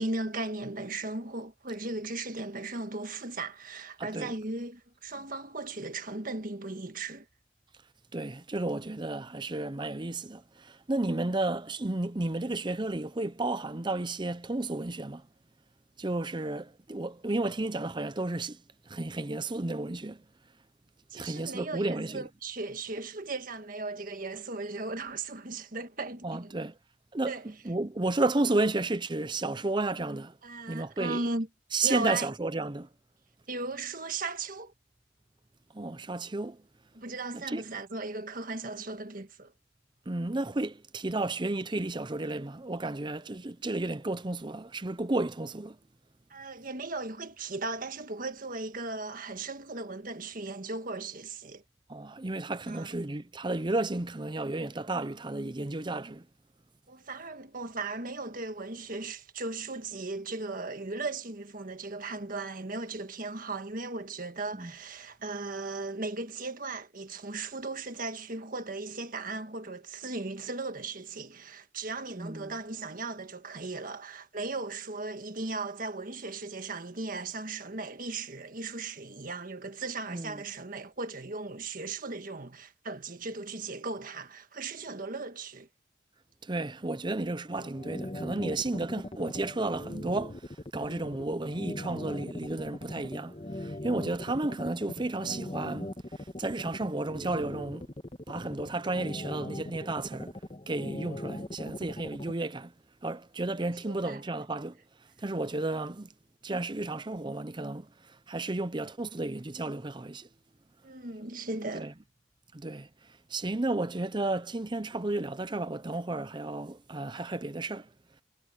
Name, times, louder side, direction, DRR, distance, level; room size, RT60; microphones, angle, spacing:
voice 1, 0.0-7.3 11.2-11.3 21.1-26.5 27.2-27.4 30.4-31.5 31.8-32.3 33.5-34.7 36.9-39.5 46.3-51.6 52.7-52.9 56.9-85.7 103.8-104.2 110.8-111.9, right 3 dB, 45° right, 1.6 m, -37 dB
voice 2, 4.0-4.3 8.1-15.2 16.0-18.6 18.9-20.2 21.1-22.3 26.2-26.7 27.1-30.4 30.7-31.2 31.7-32.9 35.7-36.6 37.3-37.6 40.1-45.8 51.9-56.3 64.5-64.7 72.2-72.5 80.1-80.4 86.4-97.9 98.3-100.4 100.7-102.7 103.0-104.8 105.2-106.1 106.4-110.3 111.7-111.9 112.5-112.9 113.3-117.9, right 2 dB, 25° right, 0.7 m, -32 dB
sound 1, 87.6-102.3, left 1 dB, 30° left, 1.5 m, -40 dB
head